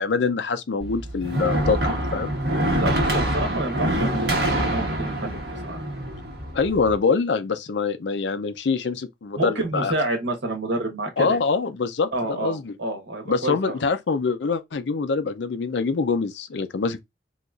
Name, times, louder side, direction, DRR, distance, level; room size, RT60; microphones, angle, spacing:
voice 1, 0.0-2.3 6.5-9.9 11.2-12.7 13.3-17.0, left 4 dB, 75° left, 0.5 m, -24 dB
sound 1, 0.8-7.0, right 1 dB, 60° right, 1.3 m, -25 dB
voice 2, 2.8-5.8 9.4-11.4 12.1-13.8, right 2 dB, 85° right, 1.2 m, -29 dB
4.0 x 2.9 x 2.4 m
head